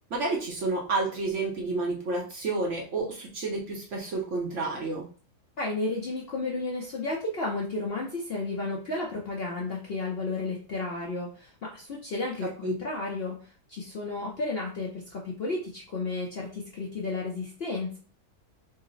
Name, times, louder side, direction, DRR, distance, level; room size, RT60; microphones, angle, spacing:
voice 1, 0.1-5.1 12.4-12.7, right 3 dB, 60° right, 0 dB, 0.9 m, -30 dB
voice 2, 5.6-13.4 13.7-18.0, left 3 dB, 55° left, -2 dB, 0.7 m, -32 dB
3.8 x 2.0 x 3.9 m, 0.40 s
omnidirectional pair, 1.7 m